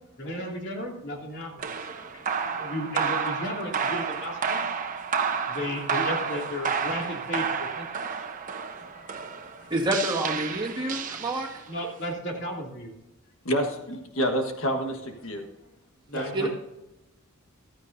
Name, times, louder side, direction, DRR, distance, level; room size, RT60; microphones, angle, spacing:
voice 1, 0.2-1.9 2.6-4.6 5.5-7.9 11.7-12.9 16.1-16.5, left 1 dB, 55° left, 0 dB, 2.9 m, -34 dB
sound 1, 1.6-11.8, right 6 dB, 40° right, 0.9 m, -30 dB
voice 2, 2.0-2.6 7.0-7.1 8.8-9.7 11.1-11.2 13.4-15.4 16.1-16.5, equal, 70° left, 4 dB, 1.5 m, -31 dB
voice 3, 9.7-11.5 16.3-16.5, right 1 dB, 20° right, -2 dB, 1.9 m, -27 dB
15.0 x 13.5 x 2.7 m, 0.92 s
head